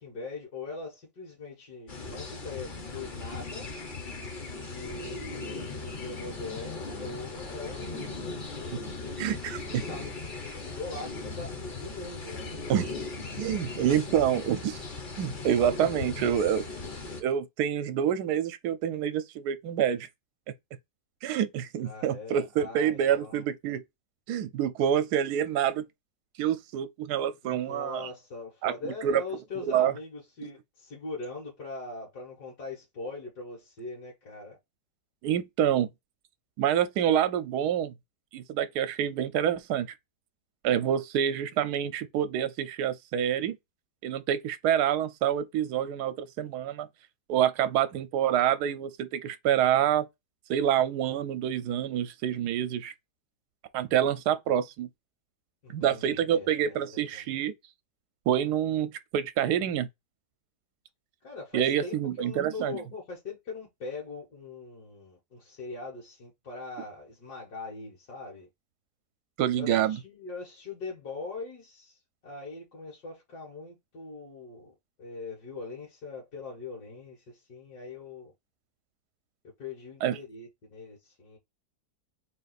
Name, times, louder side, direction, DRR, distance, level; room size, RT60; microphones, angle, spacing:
voice 1, 0.0-3.7 4.6-8.4 9.5-10.1 10.6-12.5 16.4-16.8 21.8-23.4 27.4-34.6 55.6-57.4 61.2-68.5 69.5-74.7 75.0-78.3 79.6-81.4, left 3 dB, 70° left, 2.1 m, -41 dB
sound 1, 1.9-17.2, left 3 dB, 40° left, 0.8 m, -38 dB
voice 2, 9.2-9.6 12.7-12.9 13.4-14.8 15.2-16.6 17.2-20.1 21.2-23.8 24.3-25.8 26.4-28.1 28.6-29.2 29.6-29.9 35.2-35.9 36.6-37.9 38.3-39.9 40.6-43.6 44.0-46.9 47.3-50.1 50.5-52.9 53.7-54.9 55.7-57.5 58.3-59.9 61.5-62.8 69.4-70.0 80.0-80.2, right 10 dB, 80° right, 1.1 m, -27 dB
3.9 x 2.4 x 4.0 m
omnidirectional pair, 1.8 m